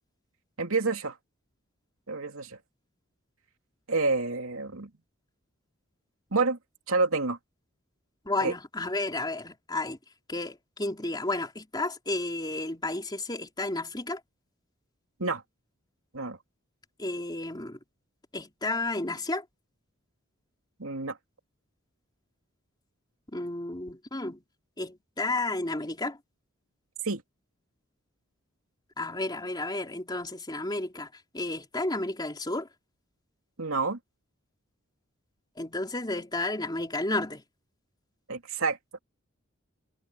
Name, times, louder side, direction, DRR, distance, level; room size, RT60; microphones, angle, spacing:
voice 1, 0.6-1.2 2.1-2.6 3.9-4.9 6.3-6.6 6.9-7.4 8.4-8.5 15.2-15.4 16.1-16.4 20.8-21.2 27.0-27.2 33.6-34.0 38.3-38.8, right 3 dB, 80° right, 2.8 m, -28 dB
voice 2, 8.2-10.0 10.3-14.2 17.0-17.8 18.3-19.4 23.3-24.4 24.8-26.2 29.0-31.1 31.3-32.7 35.6-37.4, left 2 dB, 20° left, 3.4 m, -32 dB
head